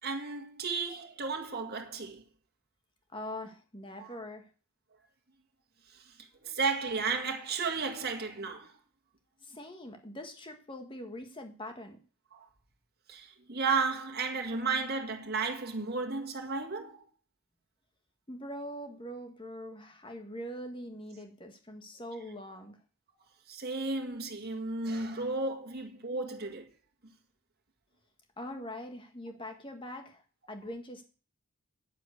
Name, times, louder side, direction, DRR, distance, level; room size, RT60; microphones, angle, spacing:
voice 1, 0.0-2.2 4.0-4.1 6.4-8.7 12.3-12.4 13.1-17.0 23.5-26.7, right 4 dB, 45° right, 2.0 m, -33 dB
voice 2, 3.1-4.5 9.4-12.0 18.3-22.8 28.4-30.2 30.5-31.0, left 1 dB, 25° left, 1.7 m, -43 dB
9.3 x 7.4 x 8.4 m
head